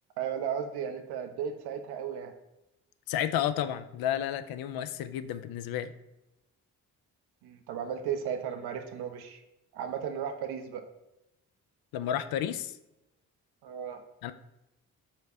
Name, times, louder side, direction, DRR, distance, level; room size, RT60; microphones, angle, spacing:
voice 1, 0.2-2.3 7.4-9.4 9.7-10.8 13.6-14.0, right 8 dB, 60° right, 6 dB, 0.6 m, -35 dB
voice 2, 3.1-5.9 11.9-12.8 14.2-14.3, left 10 dB, 55° left, 12 dB, 0.5 m, -31 dB
5.7 x 2.2 x 3.6 m, 0.92 s
hypercardioid pair, 45°, 44 cm